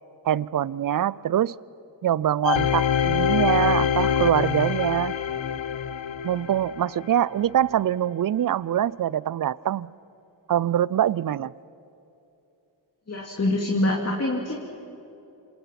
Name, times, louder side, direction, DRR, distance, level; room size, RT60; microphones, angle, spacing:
voice 1, 0.2-1.5 2.0-5.2 6.2-9.9 10.5-11.5, right 10 dB, 45° right, 22 dB, 0.5 m, -24 dB
sound 1, 2.4-7.3 7.8-7.9, left 8 dB, 70° left, 1.1 m, -25 dB
voice 2, 13.1-14.6, left 1 dB, 30° left, -1 dB, 2.7 m, -25 dB
27.0 x 27.0 x 6.0 m, 2.8 s
wide cardioid pair, 85°, 47 cm